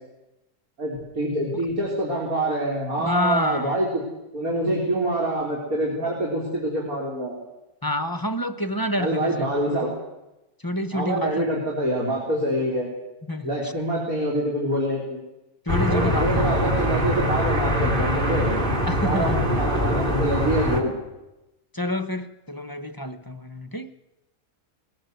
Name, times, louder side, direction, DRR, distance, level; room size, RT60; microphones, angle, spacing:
voice 1, 0.8-4.0 4.3-7.4 9.0-9.9 10.9-12.9 13.4-15.2 15.9-18.5 19.0-20.9, right 1 dB, 70° right, -3 dB, 4.4 m, -26 dB
voice 2, 3.0-3.8 7.8-9.4 10.6-11.4 13.3-13.7 15.7-16.8 18.9-19.4 21.7-23.9, left 1 dB, 20° left, 11 dB, 0.7 m, -28 dB
sound 1, 15.7-20.8, equal, 35° right, 3.3 m, -23 dB
21.0 x 17.5 x 7.9 m, 0.97 s
omnidirectional pair, 1.6 m